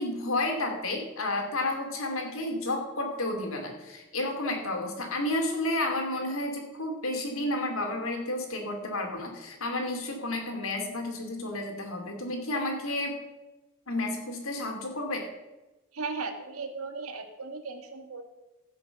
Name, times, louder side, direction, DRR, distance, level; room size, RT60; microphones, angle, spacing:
voice 1, 0.0-13.2 13.9-15.2, left 1 dB, 70° left, 3 dB, 2.5 m, -31 dB
voice 2, 15.9-18.2, right 4 dB, 85° right, 7 dB, 1.6 m, -36 dB
15.5 x 5.9 x 6.8 m, 1.1 s
head